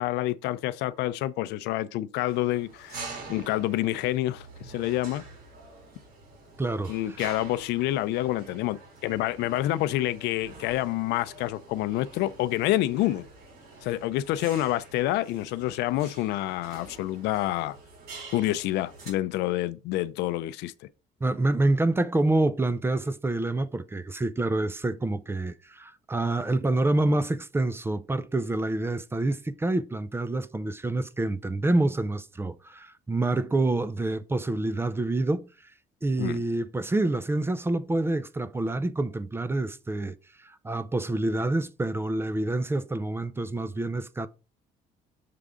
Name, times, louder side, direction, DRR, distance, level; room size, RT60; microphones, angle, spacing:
voice 1, 0.0-5.2 6.9-13.3 13.8-17.8 18.3-20.9 36.2-36.4, left 15 dB, 85° left, 0.5 m, -28 dB
sound 1, 2.3-19.1, right 3 dB, 65° right, 3.6 m, -46 dB
voice 2, 6.6-6.9 21.2-35.5 36.0-44.3, right 2 dB, 15° right, 0.5 m, -27 dB
6.7 x 3.6 x 5.0 m
cardioid pair, 110°, 17 cm